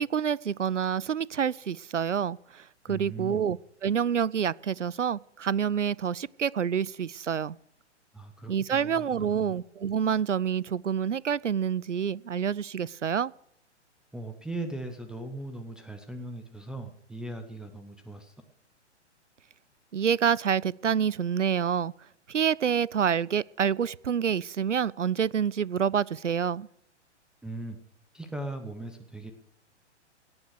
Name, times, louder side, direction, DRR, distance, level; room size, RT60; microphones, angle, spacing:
voice 1, 0.0-7.6 8.5-13.3 19.9-21.9 22.3-26.7, right 8 dB, 85° right, 0.5 m, -27 dB
voice 2, 2.9-3.5 8.1-9.5 14.1-18.3 27.4-27.8 28.1-29.3, right 2 dB, ahead, 0.7 m, -39 dB
17.0 x 9.6 x 6.5 m
figure-of-eight pair, 115°, 36 cm